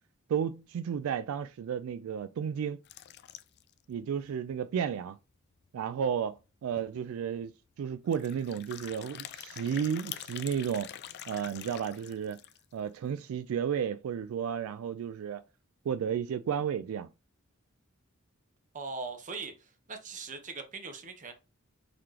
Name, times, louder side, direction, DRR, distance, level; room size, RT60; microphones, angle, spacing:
voice 1, 0.3-2.8 3.9-5.2 5.7-6.4 6.6-7.5 7.8-10.9 11.3-12.4 12.7-15.4 15.9-17.1, right 8 dB, 75° right, 0.3 m, -32 dB
sound 1, 2.8-3.8 4.2-4.3 4.5-4.6 5.1-5.2 6.4-6.5 6.8-7.0 8.1-12.7, left 11 dB, 50° left, 0.3 m, -45 dB
voice 2, 18.7-21.3, right 4 dB, 35° right, 0.8 m, -40 dB
4.0 x 2.8 x 3.1 m
head